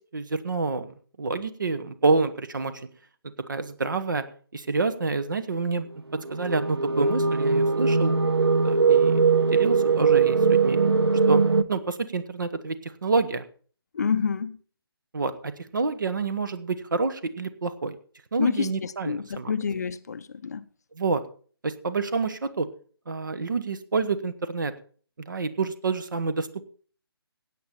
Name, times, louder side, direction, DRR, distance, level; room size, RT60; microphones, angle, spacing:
voice 1, 0.0-2.9 3.5-4.2 4.5-5.9 6.3-8.2 8.6-9.2 9.5-10.8 11.3-11.4 11.7-13.4 15.1-18.0 18.3-19.5 20.9-21.2 21.6-22.7 23.1-24.7 25.3-26.6, right 4 dB, 50° right, 1.3 m, -28 dB
sound 1, 6.2-11.6, right 5 dB, 75° right, 0.7 m, -21 dB
voice 2, 13.9-14.6 18.4-20.6, left 6 dB, 40° left, 0.6 m, -28 dB
16.5 x 8.6 x 4.4 m
figure-of-eight pair, 145°, 13 cm